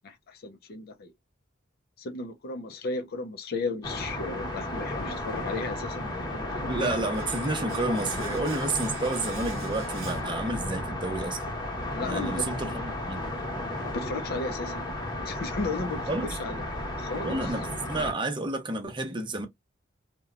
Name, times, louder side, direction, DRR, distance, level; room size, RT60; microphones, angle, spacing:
voice 1, 0.0-1.1 2.0-6.9 11.9-12.7 13.8-14.8 15.2-16.6 17.0-17.5, left 3 dB, 50° left, 0.5 m, -35 dB
sound 1, 3.8-18.1, left 1 dB, 25° left, 1.0 m, -33 dB
voice 2, 6.6-11.4 12.0-13.3 16.1-16.4 17.2-19.5, right 2 dB, 25° right, 0.6 m, -30 dB
Domestic sounds home sounds, 7.1-11.0 11.2-11.4, right 8 dB, 90° right, 0.6 m, -47 dB
2.8 x 2.1 x 2.4 m
head